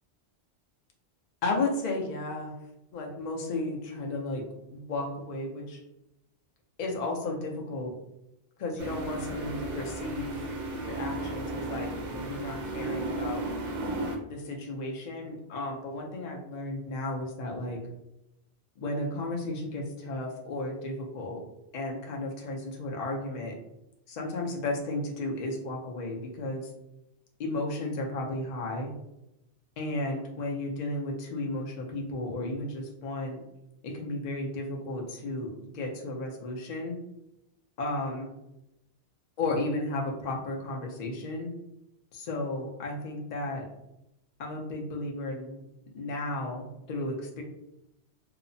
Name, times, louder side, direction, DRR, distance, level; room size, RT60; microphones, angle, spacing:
voice 1, 1.4-2.5 2.9-4.4 4.7-5.8 6.8-7.9 8.6-10.5 10.8-13.5 14.3-17.8 18.8-21.4 21.7-23.6 24.1-26.7 27.4-28.9 29.8-33.4 33.8-37.0 37.8-38.3 39.4-41.5 42.1-43.6 44.4-45.6 45.9-47.4, left 2 dB, 50° left, 0 dB, 0.5 m, -34 dB
sound 1, 8.8-14.2, right 2 dB, 65° right, 0.7 m, -34 dB
2.8 x 2.0 x 2.6 m, 0.87 s
omnidirectional pair, 1.1 m